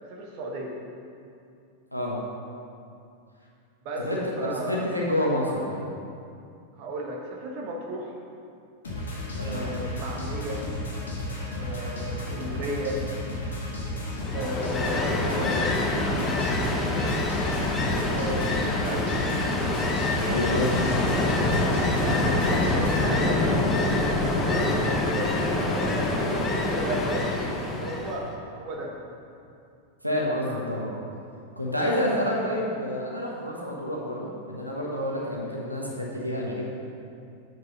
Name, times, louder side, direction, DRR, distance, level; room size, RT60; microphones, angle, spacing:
voice 1, 0.0-0.8 3.8-4.9 6.8-8.1 9.4-10.6 11.6-13.0 14.3-16.4 18.1-19.2 21.0-27.3 27.7-28.2 28.5-28.9, right 1 dB, 45° right, 0 dB, 1.1 m, -34 dB
voice 2, 4.0-5.8 9.3-9.7 20.2-20.7 30.0-30.9 31.6-36.6, left 1 dB, 90° right, -3 dB, 1.2 m, -28 dB
sound 1, 8.8-23.1, left 1 dB, 65° left, 1.8 m, -33 dB
Ocean, 14.2-28.3, left 2 dB, 20° left, 1.0 m, -26 dB
7.6 x 5.5 x 5.4 m, 2.5 s
figure-of-eight pair, 90°, 0 cm